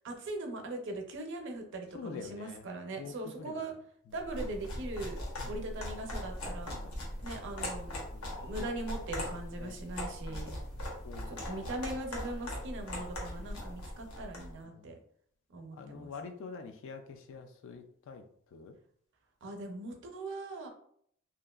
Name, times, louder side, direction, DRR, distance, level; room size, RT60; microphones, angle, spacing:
voice 1, 0.0-3.7 4.1-5.2 5.5-6.7 7.2-7.9 8.4-10.5 11.3-15.0 15.5-16.1 19.4-20.7, right 2 dB, 60° right, 3 dB, 0.5 m, -40 dB
voice 2, 1.9-2.7 3.0-3.7 5.4-5.6 6.7-7.2 8.1-8.5 9.6-9.8 10.3-10.5 11.0-11.7 13.4-13.6 14.6-15.0 15.7-18.2 18.5-18.8, left 5 dB, 65° left, 6 dB, 0.3 m, -47 dB
sound 1, 4.2-14.5, left 1 dB, 90° left, 0.8 m, -40 dB
2.8 x 2.4 x 2.3 m, 0.65 s
head